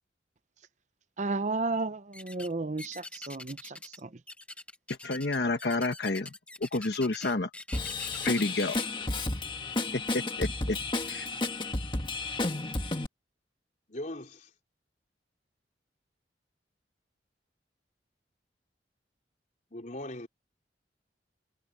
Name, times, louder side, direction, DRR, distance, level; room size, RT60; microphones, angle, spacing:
voice 1, 1.2-4.1, right 3 dB, 40° right, 0.7 m, -33 dB
sound 1, 2.1-2.5 2.8-4.0 4.3-8.9, left 2 dB, 5° left, 1.0 m, -44 dB
voice 2, 5.0-6.3 6.6-7.5 8.2-8.8 9.9-10.8 11.1-11.3, left 2 dB, 65° left, 1.2 m, -29 dB
Drum kit / Drum, 7.7-13.1, left 2 dB, 25° left, 1.7 m, -32 dB
voice 3, 13.9-14.5 19.7-20.3, left 1 dB, 45° left, 4.0 m, -39 dB
head